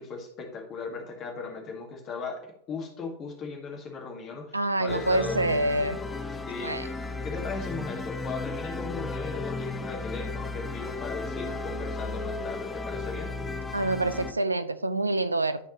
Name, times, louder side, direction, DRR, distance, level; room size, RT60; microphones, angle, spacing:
voice 1, 0.0-2.4 2.7-5.4 6.5-6.9 7.2-13.4, left 4 dB, 30° left, 0 dB, 2.0 m, -37 dB
voice 2, 4.5-6.0 6.6-6.9 13.7-15.6, right 2 dB, 80° right, 12 dB, 0.4 m, -26 dB
sound 1, 4.9-14.3, left 3 dB, 15° left, 0.6 m, -34 dB
12.5 x 4.5 x 3.1 m, 0.69 s
figure-of-eight pair, 90°, 0 cm